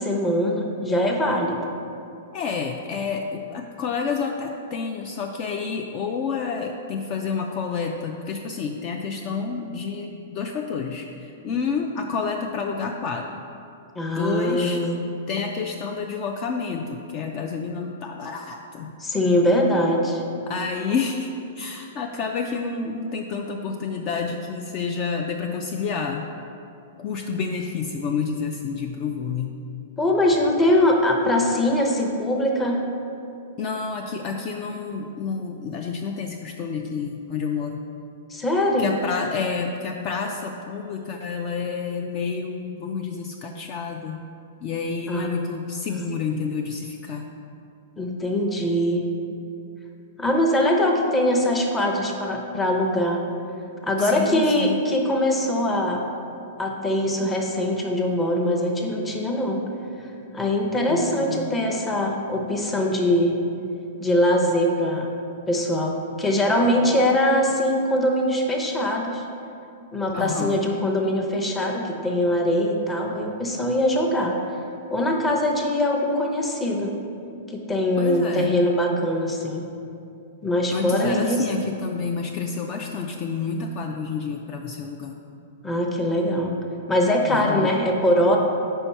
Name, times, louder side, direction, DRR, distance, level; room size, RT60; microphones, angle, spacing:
voice 1, 0.0-1.6 14.0-15.0 19.0-20.2 30.0-32.8 38.3-38.9 45.1-45.3 45.9-46.1 48.0-49.1 50.2-53.2 53.8-56.0 56.6-59.6 60.3-63.4 64.0-65.1 65.5-69.2 69.9-74.4 74.9-76.9 77.5-79.6 80.4-81.4 85.6-86.5 86.9-88.4, left 1 dB, 10° left, 1 dB, 0.7 m, -22 dB
voice 2, 2.3-13.4 14.1-14.8 15.3-18.9 20.5-21.3 21.6-26.3 27.0-29.6 33.6-37.8 38.8-44.2 44.6-47.3 54.0-54.8 60.9-61.5 70.1-70.6 78.0-78.6 80.7-85.1 87.3-87.7, left 5 dB, 40° left, 3 dB, 0.3 m, -29 dB
4.5 x 4.4 x 5.5 m, 2.6 s
hypercardioid pair, 140°, 0 cm